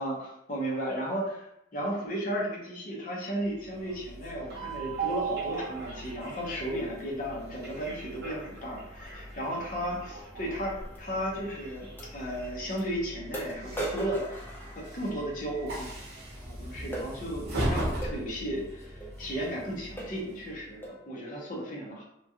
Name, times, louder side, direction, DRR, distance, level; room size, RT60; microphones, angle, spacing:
voice 1, 0.0-11.9 12.1-14.5 14.8-15.9 16.5-22.0, equal, 45° left, -3 dB, 0.8 m, -34 dB
Train, 3.5-20.8, right 2 dB, 55° right, 0.9 m, -39 dB
sound 1, 10.9-11.0 12.0-12.1 12.8-12.9 13.3-15.3 16.9-17.1 18.0-18.2 19.0-19.2 19.5-19.7 20.0-20.3 20.8-21.1, right 2 dB, 10° left, 0.5 m, -38 dB
3.0 x 2.4 x 2.8 m, 0.81 s
head